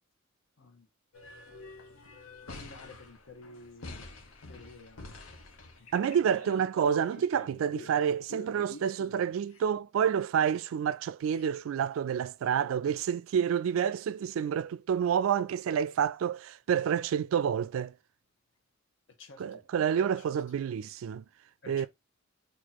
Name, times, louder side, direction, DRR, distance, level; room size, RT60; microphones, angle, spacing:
sound 1, 1.1-9.6 10.5-10.6 10.9-11.0 11.3-11.5 11.9-12.0 13.5-13.6, left 2 dB, 85° left, 0.8 m, -48 dB
voice 1, 2.5-4.1 4.5-5.4 19.2-19.6 20.3-20.4 21.6-21.9, left 3 dB, 65° left, 1.1 m, -51 dB
voice 2, 5.9-17.9 19.4-21.2 21.7-21.9, right 8 dB, 75° right, 0.3 m, -29 dB
2.9 x 2.6 x 4.0 m
head